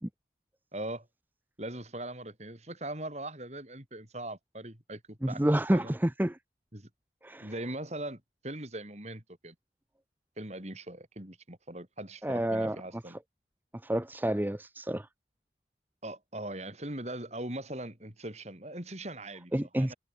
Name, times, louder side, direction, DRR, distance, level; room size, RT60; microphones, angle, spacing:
voice 1, 0.7-1.1 1.6-5.4 5.7-5.9 6.7-6.9 7.4-9.5 10.4-13.2 16.0-19.9, right 1 dB, 35° right, 4.3 m, -40 dB
voice 2, 5.2-6.4 7.2-7.5 12.2-12.8 13.8-15.1 19.5-19.9, right 1 dB, 10° right, 0.6 m, -28 dB
head